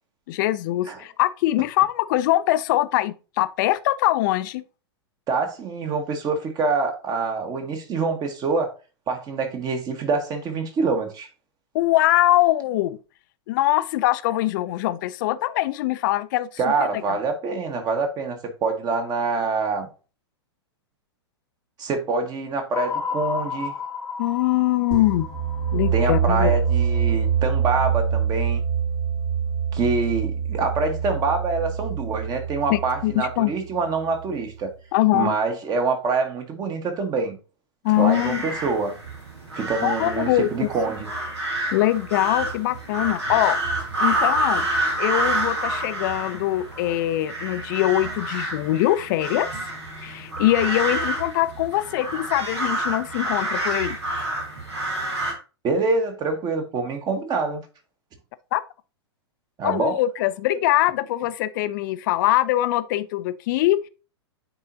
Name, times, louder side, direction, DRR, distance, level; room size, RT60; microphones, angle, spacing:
voice 1, 0.3-4.6 11.7-13.0 13.5-16.5 16.8-16.9 24.2-25.3 25.7-26.5 32.7-33.5 34.9-35.3 37.8-38.4 39.8-40.7 41.7-43.6 44.0-44.7 45.0-49.5 50.0-54.0 58.5-58.6 59.6-63.9, left 15 dB, 45° left, 0.5 m, -22 dB
voice 2, 5.3-8.7 9.1-11.3 16.6-19.9 21.8-23.7 25.9-28.6 29.7-34.7 35.1-37.4 38.0-38.9 39.5-41.1 55.6-57.6 59.6-59.9, right 4 dB, 25° right, 1.4 m, -25 dB
sound 1, 22.7-27.0, left 5 dB, 15° left, 1.1 m, -32 dB
sound 2, 24.9-34.5, right 7 dB, 55° right, 2.5 m, -25 dB
sound 3, 37.9-55.3, right 1 dB, 85° right, 2.4 m, -28 dB
9.7 x 3.8 x 2.7 m
figure-of-eight pair, 105°, 14 cm